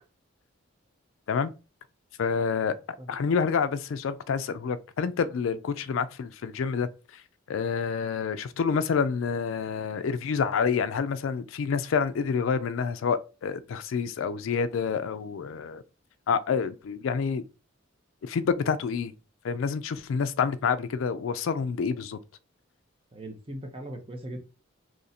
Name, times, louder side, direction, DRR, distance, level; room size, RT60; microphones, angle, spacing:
voice 1, 2.2-2.8 3.1-7.2 7.5-15.8 16.3-17.4 18.2-19.1 19.4-22.2, left 6 dB, 70° left, 0.3 m, -28 dB
voice 2, 23.1-24.4, right 1 dB, 25° right, 0.7 m, -39 dB
3.1 x 2.6 x 4.1 m
head